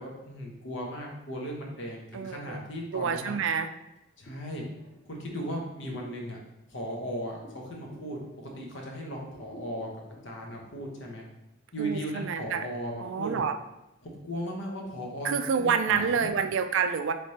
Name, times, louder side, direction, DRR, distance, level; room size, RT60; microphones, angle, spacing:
voice 1, 0.0-3.3 4.2-4.6 5.0-6.4 6.7-9.9 10.2-11.2 11.7-13.5 14.0-16.3, equal, 60° left, -1 dB, 0.9 m, -37 dB
voice 2, 2.1-2.6 2.9-3.7 11.8-12.7 13.0-13.6 15.2-17.1, right 6 dB, 65° right, 8 dB, 0.3 m, -28 dB
sound 1, 4.2-8.8 9.2-11.0, equal, 35° left, 0.8 m, -51 dB
3.3 x 3.2 x 4.1 m, 0.91 s
head